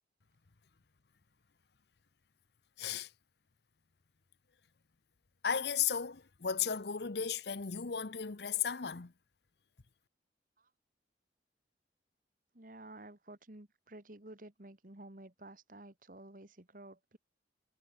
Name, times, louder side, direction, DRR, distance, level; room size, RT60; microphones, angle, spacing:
voice 1, 2.8-3.1 5.4-9.1, left 7 dB, 65° left, 0.9 m, -35 dB
voice 2, 12.5-17.2, right 1 dB, 45° right, 2.0 m, -52 dB
head